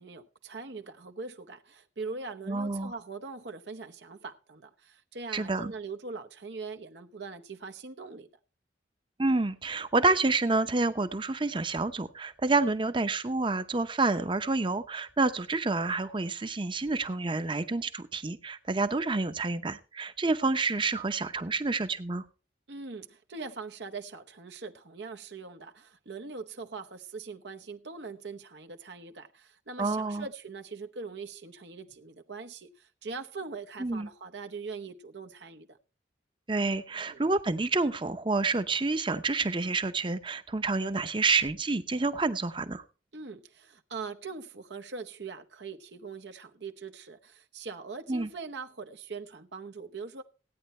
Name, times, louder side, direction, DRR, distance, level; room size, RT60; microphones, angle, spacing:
voice 1, 0.0-8.3 22.7-35.8 37.1-37.2 43.1-50.2, right 4 dB, 75° right, 0.9 m, -42 dB
voice 2, 2.5-2.9 5.3-5.7 9.2-22.2 29.8-30.2 33.8-34.1 36.5-42.8 48.1-48.3, right 3 dB, 30° right, 0.8 m, -28 dB
15.5 x 9.3 x 4.3 m
head